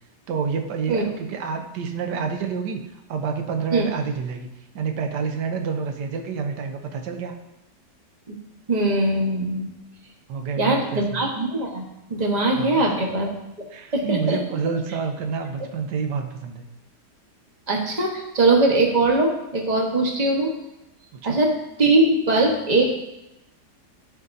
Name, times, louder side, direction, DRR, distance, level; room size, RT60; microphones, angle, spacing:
voice 1, 0.3-7.3 10.3-11.2 12.6-13.0 13.7-16.6 21.1-21.4, right 5 dB, 85° right, 5 dB, 1.4 m, -28 dB
voice 2, 8.7-9.7 10.6-13.3 13.9-14.4 17.7-20.5 21.2-23.0, right 2 dB, 25° right, 0 dB, 1.2 m, -21 dB
13.5 x 5.2 x 2.7 m, 0.91 s
omnidirectional pair, 1.8 m